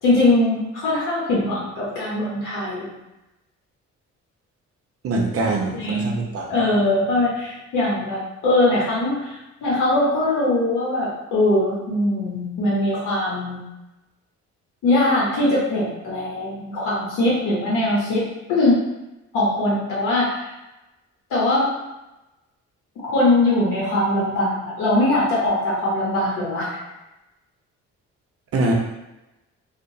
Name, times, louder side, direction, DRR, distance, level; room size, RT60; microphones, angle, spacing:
voice 1, 0.0-2.9 5.7-6.2 6.5-13.7 14.8-18.2 18.5-18.8 19.3-20.3 21.3-21.7 23.1-26.8, left 2 dB, 90° left, -6 dB, 0.8 m, -21 dB
voice 2, 5.0-6.5 28.5-28.7, right 2 dB, 50° right, 1 dB, 0.6 m, -23 dB
2.8 x 2.1 x 2.6 m, 0.98 s
cardioid pair, 90°, 30 cm